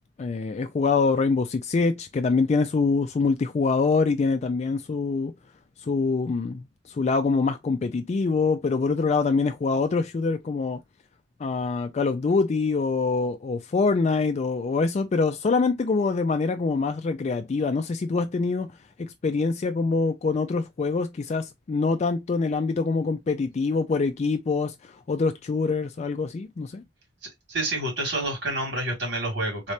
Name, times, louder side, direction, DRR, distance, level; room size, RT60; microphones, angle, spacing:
voice 1, 0.2-5.3 5.8-10.8 11.4-18.7 19.0-26.8, left 4 dB, 40° left, 0.3 m, -25 dB
voice 2, 27.5-29.7, right 1 dB, 75° right, 2.4 m, -28 dB
3.7 x 3.2 x 2.7 m
head